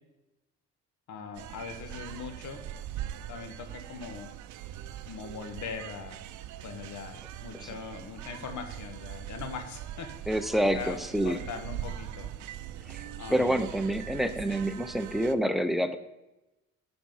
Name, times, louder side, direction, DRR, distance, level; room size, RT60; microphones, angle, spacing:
voice 1, 1.1-2.6 3.3-4.3 5.1-6.2 6.6-10.3 10.7-12.3 13.2-13.6, left 5 dB, 70° left, 7 dB, 1.4 m, -41 dB
sound 1, 1.3-15.3, right 11 dB, 75° right, 0.6 m, -41 dB
voice 2, 10.3-11.4 12.9-13.0 13.3-16.0, equal, ahead, 10 dB, 0.7 m, -27 dB
11.0 x 4.3 x 5.5 m, 1.0 s
cardioid pair, 90°, 30 cm